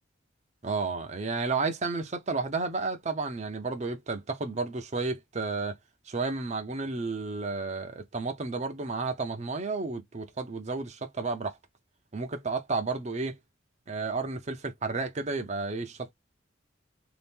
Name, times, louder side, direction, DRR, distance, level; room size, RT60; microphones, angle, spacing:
voice 1, 0.6-5.8 6.1-11.5 12.1-13.4 13.9-16.1, right 3 dB, 35° right, 0.6 m, -32 dB
2.8 x 2.5 x 3.4 m
head